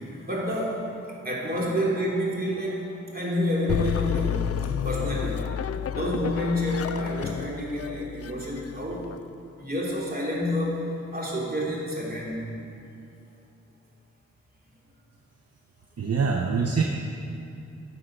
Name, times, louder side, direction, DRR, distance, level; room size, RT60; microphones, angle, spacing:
voice 1, 0.2-0.9 1.2-4.5 4.8-5.4 5.9-9.1 9.6-10.8 11.1-12.4, left 1 dB, 30° right, -4 dB, 3.1 m, -28 dB
sound 1, 3.7-9.2, left 8 dB, 55° left, 0.4 m, -31 dB
voice 2, 16.0-16.8, right 5 dB, 60° right, 3 dB, 0.8 m, -24 dB
12.0 x 7.3 x 5.9 m, 2.6 s
cardioid pair, 65°, 29 cm